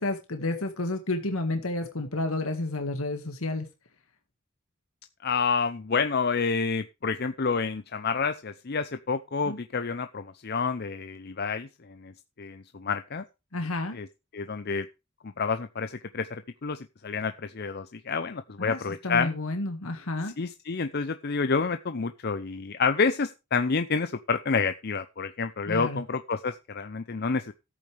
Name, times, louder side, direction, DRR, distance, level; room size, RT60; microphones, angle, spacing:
voice 1, 0.0-3.7 9.4-9.6 13.5-14.0 18.6-18.8 19.0-20.3 25.6-26.0, left 2 dB, 85° left, 5 dB, 1.8 m, -30 dB
voice 2, 5.2-12.1 12.4-13.2 13.9-14.1 14.3-14.9 15.4-16.3 16.6-19.3 20.4-27.5, left 5 dB, 50° left, 10 dB, 0.6 m, -29 dB
14.5 x 8.5 x 3.4 m, 0.27 s
head